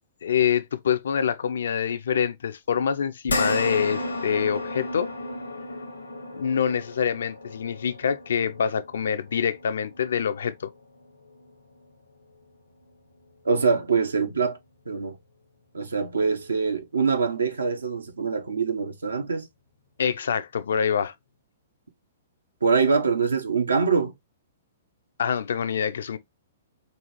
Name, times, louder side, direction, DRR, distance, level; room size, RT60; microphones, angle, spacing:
voice 1, 0.2-5.1 6.4-10.7 20.0-21.1 25.2-26.2, left 7 dB, 65° left, 0.4 m, -25 dB
sound 1, 3.3-11.9 12.3-12.4 13.9-14.0, left 2 dB, 85° left, 0.9 m, -34 dB
voice 2, 13.4-14.6 14.9-15.2 15.7-19.5 22.6-24.1, right 5 dB, 80° right, 0.8 m, -24 dB
5.3 x 2.4 x 2.9 m
figure-of-eight pair, 115°, 0 cm